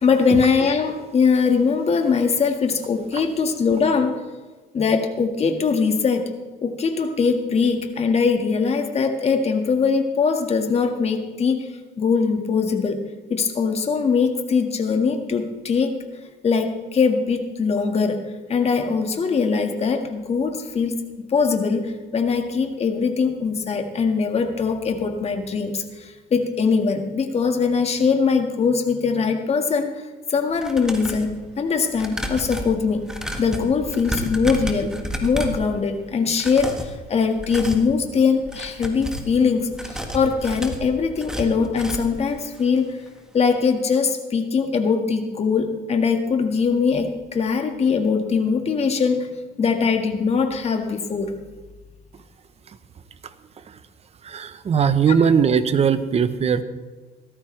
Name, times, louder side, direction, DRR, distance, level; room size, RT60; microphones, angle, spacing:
voice 1, 0.0-4.2 4.7-6.3 6.6-11.7 12.0-13.0 13.3-15.9 16.4-18.2 18.5-30.0 30.3-33.0 33.4-42.9 43.3-49.3 49.6-51.3, left 5 dB, 40° left, 5 dB, 1.8 m, -21 dB
sound 1, 30.5-31.3 31.9-35.7 36.3-36.9 37.3-37.9 38.4-39.3 39.7-42.2 42.6-42.7 43.0-43.1, equal, 5° right, 1.6 m, -31 dB
voice 2, 54.3-56.6, right 7 dB, 40° right, 12 dB, 0.9 m, -19 dB
17.5 x 13.5 x 3.3 m, 1.3 s
cardioid pair, 110°, 17 cm